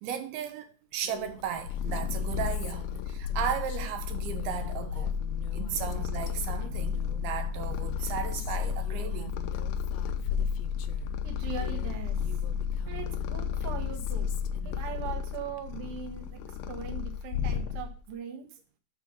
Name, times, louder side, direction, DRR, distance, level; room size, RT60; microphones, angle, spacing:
voice 1, 0.0-5.2 5.5-9.4, right 9 dB, 80° right, 2.7 m, -35 dB
Female speech woman speaking, 1.0-11.1 11.5-15.4, left 11 dB, 90° left, 2.7 m, -49 dB
Purr, 1.3-18.1, left 7 dB, 75° left, 2.3 m, -32 dB
voice 2, 11.2-12.2 12.9-14.3 14.6-18.5, right 7 dB, 60° right, 1.6 m, -40 dB
7.0 x 4.8 x 5.8 m
omnidirectional pair, 4.6 m